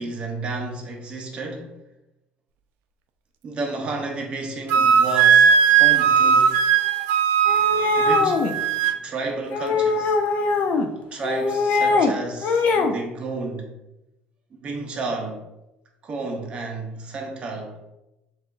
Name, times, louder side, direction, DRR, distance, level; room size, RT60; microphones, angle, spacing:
voice 1, 0.0-1.7 3.4-6.6 8.0-8.5 9.0-10.2 11.1-13.7 14.6-15.4 16.0-17.8, right 3 dB, 30° right, 2 dB, 0.6 m, -31 dB
Wind instrument woodwind instrument, 4.7-9.0, right 7 dB, 75° right, 0.3 m, -17 dB
sound 1, 7.5-8.5 9.5-10.9 11.2-12.1 12.4-13.0, left 4 dB, 40° left, 0.4 m, -22 dB
6.4 x 2.4 x 2.4 m, 0.94 s
cardioid pair, 180°, 4 cm